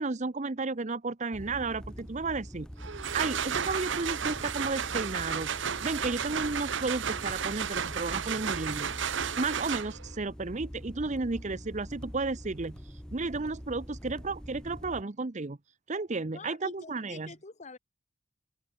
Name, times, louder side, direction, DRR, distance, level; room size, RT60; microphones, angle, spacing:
voice 1, 0.0-2.7 3.1-5.5 5.8-8.9 9.4-15.6 15.9-17.3, right 3 dB, 35° right, 0.8 m, -33 dB
sound 1, 1.3-15.0, equal, 5° left, 2.8 m, -44 dB
sound 2, 2.8-10.1, right 7 dB, 70° right, 0.9 m, -33 dB
voice 2, 16.3-17.8, left 4 dB, 35° left, 1.0 m, -47 dB
head